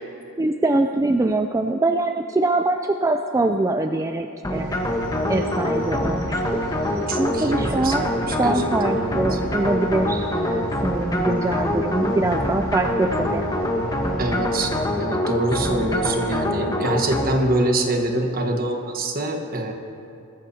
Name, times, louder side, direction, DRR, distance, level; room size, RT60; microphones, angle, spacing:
voice 1, 0.4-4.8 5.3-6.6 7.2-8.1 8.4-13.5, right 2 dB, 15° right, 5 dB, 0.3 m, -23 dB
sound 1, 4.4-17.6, left 1 dB, 20° left, 1.1 m, -25 dB
sound 2, 4.5-14.7, equal, 80° right, 3.1 m, -40 dB
voice 2, 7.1-9.4 14.2-19.7, right 2 dB, 45° right, 3 dB, 1.3 m, -25 dB
21.0 x 14.5 x 2.8 m, 2.6 s
head